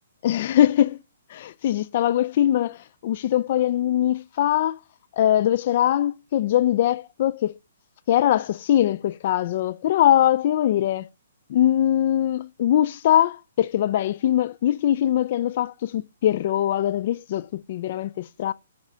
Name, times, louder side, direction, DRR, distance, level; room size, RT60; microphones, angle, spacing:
voice 1, 0.2-1.0 1.6-4.8 5.1-7.5 8.1-11.1 11.5-18.5, left 11 dB, 50° left, 0.3 m, -22 dB
9.7 x 3.6 x 5.4 m
hypercardioid pair, 130°, 0 cm